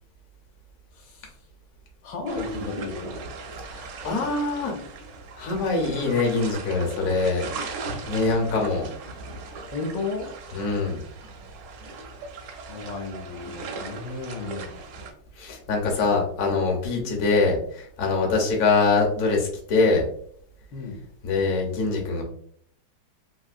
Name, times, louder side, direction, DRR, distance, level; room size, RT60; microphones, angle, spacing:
voice 1, 0.9-1.3 2.0-3.2 9.7-10.3 12.7-14.7 16.9-17.2 20.7-21.0, left 3 dB, 80° left, 2 dB, 1.2 m, -33 dB
sound 1, 2.3-15.1, right 3 dB, 85° right, 1.3 m, -38 dB
voice 2, 3.7-4.7 5.4-7.5 8.1-8.9 10.5-11.0 15.4-20.0 21.2-22.2, left 3 dB, 60° left, 0 dB, 1.1 m, -23 dB
3.5 x 2.6 x 2.4 m, 0.64 s
omnidirectional pair, 1.9 m